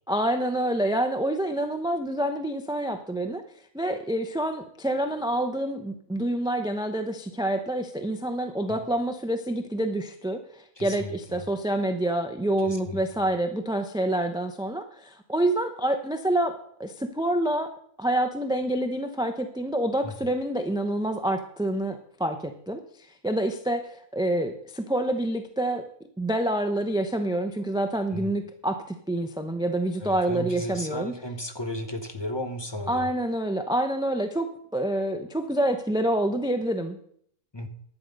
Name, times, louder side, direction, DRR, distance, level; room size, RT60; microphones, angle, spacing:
voice 1, 0.1-3.4 3.7-16.5 16.8-17.7 18.0-22.8 23.2-25.8 26.2-31.1 32.9-37.0, right 1 dB, 5° right, 7 dB, 0.5 m, -27 dB
voice 2, 10.8-11.4 12.6-13.3 20.0-20.1 28.1-28.3 30.0-33.1 37.5-37.7, left 1 dB, 20° left, 6 dB, 1.0 m, -35 dB
11.0 x 8.8 x 5.3 m, 0.65 s
omnidirectional pair, 1.4 m